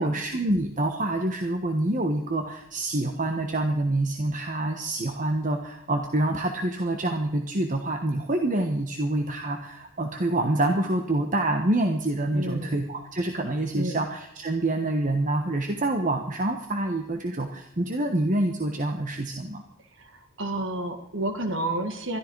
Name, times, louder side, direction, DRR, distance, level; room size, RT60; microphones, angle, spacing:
voice 1, 0.0-19.6, right 1 dB, 40° right, 4 dB, 1.2 m, -26 dB
voice 2, 12.3-12.8 13.7-14.0 19.8-22.2, right 1 dB, 60° right, 7 dB, 1.8 m, -31 dB
21.0 x 13.5 x 4.7 m, 0.82 s
head